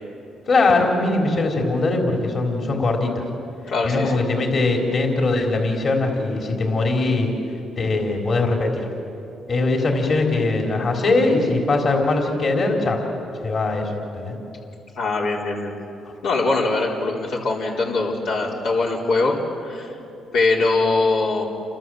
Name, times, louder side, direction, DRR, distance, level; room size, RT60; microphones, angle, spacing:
voice 1, 0.5-3.2 3.8-7.3 7.8-8.9 9.5-13.0 13.4-14.3 16.1-16.2, left 3 dB, 50° left, 1 dB, 4.0 m, -21 dB
voice 2, 3.7-4.2 15.0-15.7 16.2-19.4 19.6-19.9 20.3-21.4, left 3 dB, 80° left, -3 dB, 4.1 m, -22 dB
29.0 x 25.0 x 7.9 m, 2.7 s
cardioid pair, 90°, 0 cm